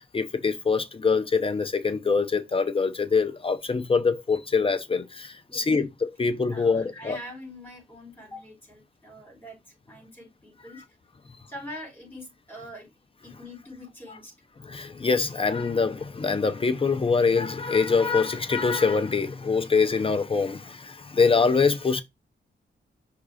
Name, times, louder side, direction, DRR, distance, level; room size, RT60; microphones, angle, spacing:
voice 1, 0.0-7.2 14.6-22.0, left 4 dB, 30° left, 0.6 m, -24 dB
voice 2, 5.5-5.9 6.5-10.8 11.5-12.9 13.2-14.3, left 1 dB, 10° left, 4.7 m, -44 dB
5.9 x 3.7 x 4.8 m
wide cardioid pair, 150°, 19 cm